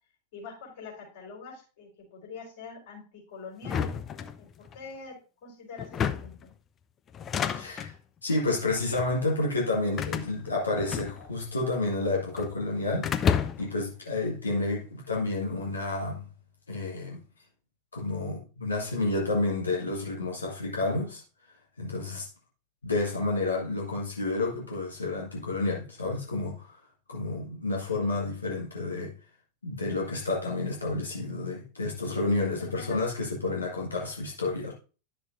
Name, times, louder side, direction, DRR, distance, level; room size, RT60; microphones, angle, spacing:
voice 1, 0.3-5.1 5.4-5.9 6.2-6.5 32.6-33.0, left 4 dB, 55° left, 4.4 m, -44 dB
sound 1, 3.6-4.8 5.8-6.5 7.1-8.0 8.8-9.1 10.0-11.5 11.8-12.5 13.0-13.8, left 7 dB, 25° left, 0.5 m, -30 dB
voice 2, 7.5-7.9 8.2-16.3 16.7-17.2 17.9-21.2 21.8-22.3 22.8-26.8 27.1-29.1 29.6-34.7, left 2 dB, 75° left, 1.6 m, -30 dB
10.5 x 6.4 x 2.6 m
figure-of-eight pair, 90°, 0 cm